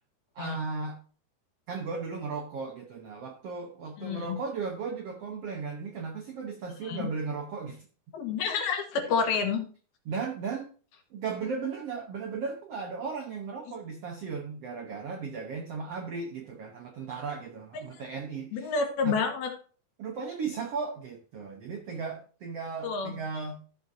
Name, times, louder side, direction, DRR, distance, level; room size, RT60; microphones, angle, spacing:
voice 1, 0.3-1.0 1.7-7.9 10.0-10.7 11.1-18.7 19.0-19.2 20.0-23.6, right 5 dB, 85° right, 2 dB, 1.3 m, -36 dB
voice 2, 4.0-4.4 6.8-7.1 8.1-9.6 17.7-17.8 18.5-19.5 22.8-23.2, left 5 dB, 75° left, 4 dB, 3.3 m, -29 dB
14.0 x 6.6 x 2.8 m, 0.40 s
omnidirectional pair, 4.5 m